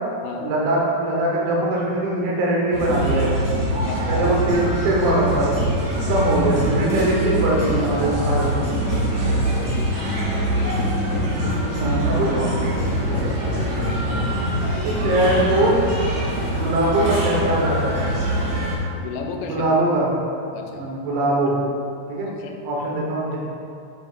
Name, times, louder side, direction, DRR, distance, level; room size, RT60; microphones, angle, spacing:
voice 1, 0.4-3.4 4.1-5.6 6.1-8.7 11.7-12.5 14.8-15.8 16.4-18.0 19.4-20.1 20.8-21.6 22.1-22.3 22.7-23.4, right 1 dB, 85° right, -3 dB, 3.6 m, -21 dB
sound 1, 2.7-18.8, right 1 dB, 70° right, 1.4 m, -24 dB
voice 2, 3.8-4.4 9.4-10.8 13.1-13.4 16.4-16.7 19.0-19.6 20.5-20.9 21.5-21.6 22.3-22.6, left 5 dB, 90° left, 2 dB, 2.9 m, -35 dB
sound 2, 4.0-4.5 8.0-8.5, right 1 dB, 50° right, 2.0 m, -33 dB
Hammer, 8.5-9.9 10.4-11.8 12.4-14.4 15.0-15.9, left 2 dB, 60° left, 1.9 m, -30 dB
7.8 x 7.5 x 2.5 m, 2.4 s
omnidirectional pair, 5.1 m